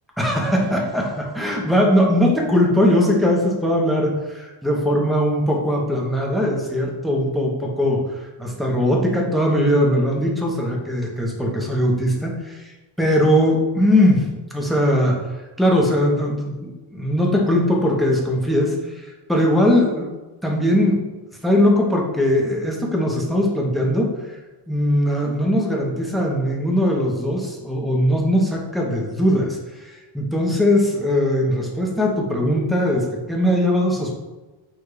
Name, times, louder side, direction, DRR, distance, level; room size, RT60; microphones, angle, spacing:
voice 1, 0.2-15.2 15.6-20.1 20.4-21.0 21.4-24.4 24.7-34.1, equal, ahead, -1 dB, 1.1 m, -20 dB
7.1 x 2.7 x 4.9 m, 1.2 s
cardioid pair, 125°, 49 cm